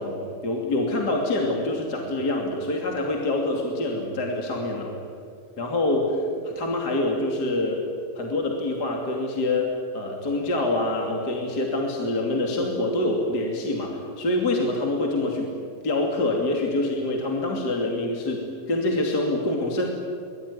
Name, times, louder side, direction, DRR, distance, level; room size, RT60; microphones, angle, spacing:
voice 1, 0.0-4.9 5.6-7.8 8.2-9.7 9.9-15.5 15.8-19.9, left 2 dB, 30° left, 0 dB, 2.8 m, -26 dB
24.5 x 21.0 x 9.9 m, 2.2 s
omnidirectional pair, 4.1 m